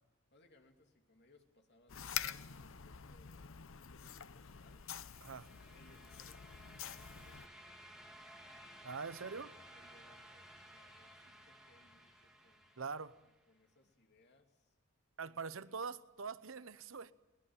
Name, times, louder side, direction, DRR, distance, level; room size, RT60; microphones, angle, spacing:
voice 1, 0.3-4.8 5.6-8.7 9.4-12.8 13.5-14.8 15.3-15.7, left 2 dB, 55° left, 2.8 m, -69 dB
sound 1, 1.9-7.5, left 9 dB, 75° left, 0.8 m, -46 dB
sound 2, 4.5-13.4, equal, 5° right, 2.8 m, -57 dB
voice 2, 8.8-9.5 12.8-13.2 15.2-17.1, right 5 dB, 80° right, 0.9 m, -43 dB
22.0 x 20.0 x 8.9 m
head